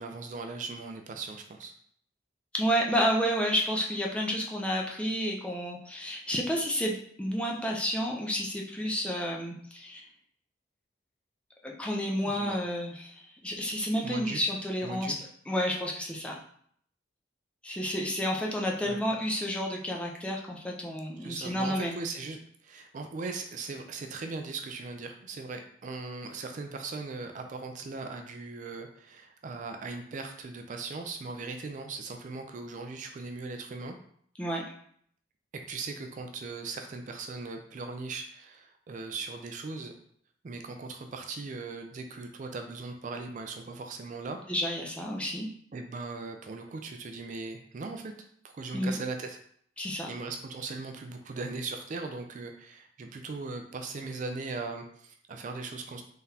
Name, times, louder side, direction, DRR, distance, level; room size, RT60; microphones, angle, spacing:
voice 1, 0.0-1.7 12.2-12.6 14.0-14.4 14.8-15.2 18.8-19.0 21.2-33.9 35.7-39.9 40.4-44.4 45.7-48.1 48.4-49.4 50.1-56.0, right 3 dB, 45° right, 5 dB, 0.4 m, -39 dB
voice 2, 2.5-10.0 11.6-15.1 15.5-16.4 17.6-21.9 34.4-34.6 44.5-45.5 48.7-49.0 49.8-50.1, equal, 5° left, -1 dB, 0.5 m, -30 dB
3.8 x 3.6 x 2.8 m, 0.63 s
head